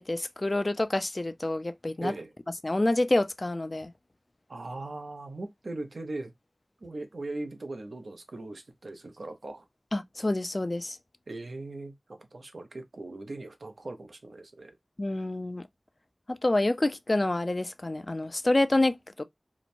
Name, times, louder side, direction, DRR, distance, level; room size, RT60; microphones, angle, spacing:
voice 1, 0.0-2.1 2.6-3.9 9.9-11.0 15.0-15.7 16.3-19.2, left 2 dB, 45° left, 0.3 m, -27 dB
voice 2, 2.0-2.3 4.5-6.3 6.8-9.6 11.3-14.7, right 2 dB, 85° right, 0.6 m, -39 dB
2.9 x 2.1 x 2.5 m
wide cardioid pair, 55°, 0 cm